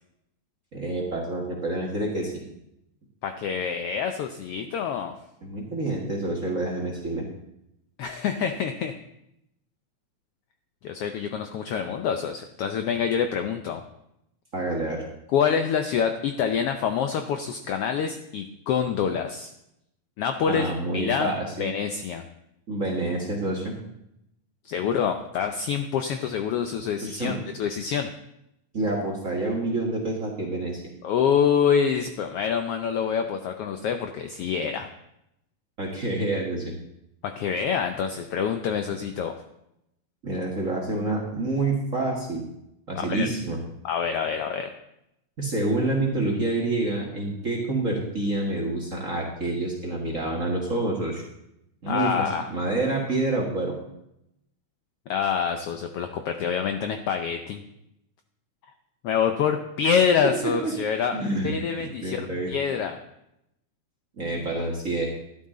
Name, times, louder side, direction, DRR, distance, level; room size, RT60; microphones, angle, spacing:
voice 1, 0.7-2.4 5.4-7.2 14.5-15.0 20.4-21.7 22.7-23.7 27.0-27.4 28.7-30.8 35.8-36.8 40.2-42.4 42.9-43.6 45.4-51.2 51.8-53.8 60.4-60.7 61.1-62.5 64.2-65.1, right 2 dB, 35° right, 0 dB, 1.4 m, -28 dB
voice 2, 3.2-5.1 8.0-8.9 10.8-13.8 15.3-19.5 20.2-21.3 21.6-22.2 24.6-28.1 31.0-34.9 37.2-39.3 43.0-43.3 43.8-44.7 51.9-52.5 55.1-57.6 59.0-61.2 61.4-63.0, left 7 dB, 85° left, 6 dB, 1.3 m, -26 dB
12.0 x 12.0 x 3.8 m, 0.83 s
omnidirectional pair, 3.4 m